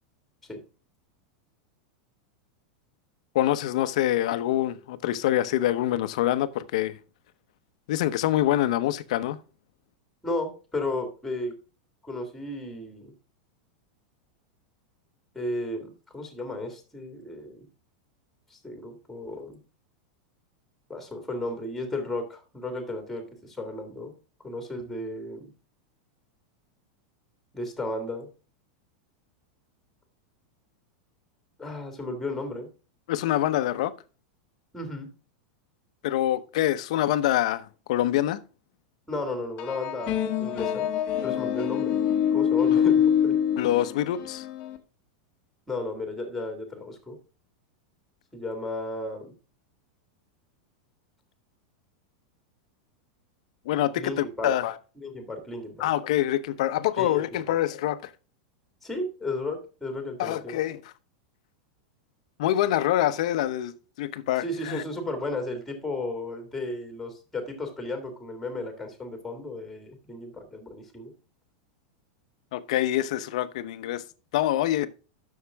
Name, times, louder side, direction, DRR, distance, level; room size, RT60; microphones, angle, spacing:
voice 1, 3.3-7.0 7.9-9.4 33.1-33.9 36.0-38.4 42.7-42.8 43.6-44.5 53.7-54.7 55.8-58.1 60.2-60.9 62.4-63.7 64.0-64.8 72.5-74.0 74.3-74.9, left 13 dB, 55° left, 0.8 m, -25 dB
voice 2, 10.2-11.5 12.0-13.1 15.3-17.6 18.5-19.6 20.9-24.1 24.4-25.5 27.5-28.3 31.6-32.7 34.7-35.1 39.1-40.9 41.2-42.0 42.3-43.4 45.7-47.2 48.3-49.3 54.0-54.5 55.0-55.9 57.0-57.5 58.8-60.6 64.4-71.1, left 2 dB, 5° left, 1.9 m, -34 dB
sound 1, 39.6-44.8, left 9 dB, 30° left, 1.0 m, -25 dB
11.5 x 6.6 x 3.5 m
supercardioid pair, 175°, 4 cm